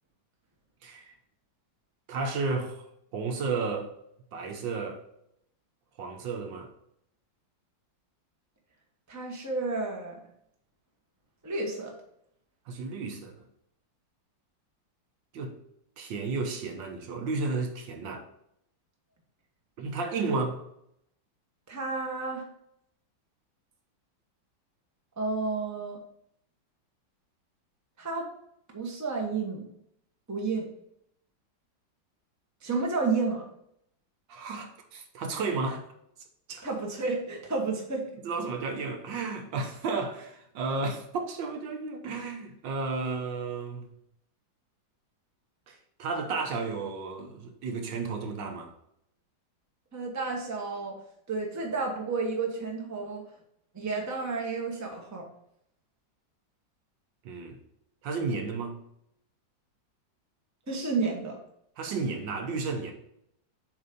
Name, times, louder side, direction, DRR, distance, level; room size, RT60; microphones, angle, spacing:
voice 1, 0.8-1.1 2.1-2.9 3.1-3.9 4.3-5.0 6.0-6.7 12.7-13.4 15.3-15.5 16.0-18.2 19.8-20.6 34.3-35.8 36.5-36.7 38.2-43.9 45.7-48.7 57.2-57.6 58.0-58.8 61.8-62.9, right 4 dB, 80° right, 1.6 m, -33 dB
voice 2, 9.1-10.2 11.4-11.9 20.3-20.4 21.7-22.4 25.2-26.0 28.0-28.3 28.7-29.6 30.3-30.7 32.6-33.5 36.6-38.0 49.9-51.0 51.3-53.2 53.7-55.3 60.7-61.4, right 3 dB, 10° right, 0.9 m, -31 dB
7.9 x 2.8 x 5.1 m
omnidirectional pair, 2.0 m